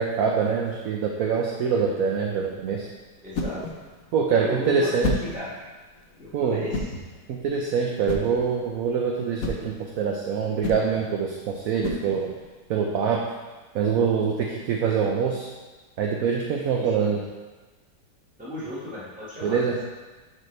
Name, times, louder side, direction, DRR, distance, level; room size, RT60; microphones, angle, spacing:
voice 1, 0.0-2.9 4.1-5.2 6.3-6.6 7.3-12.3 12.7-13.3 13.7-15.5 16.0-17.2 19.4-19.8, right 6 dB, 65° right, -1 dB, 1.0 m, -24 dB
sound 1, 2.1-12.6, left 2 dB, 60° left, 1.1 m, -35 dB
voice 2, 3.2-3.7 4.3-5.5 6.2-6.9 16.7-16.9 18.4-19.6, left 1 dB, 5° right, -9 dB, 1.6 m, -34 dB
11.0 x 4.3 x 3.3 m, 1.3 s
omnidirectional pair, 1.9 m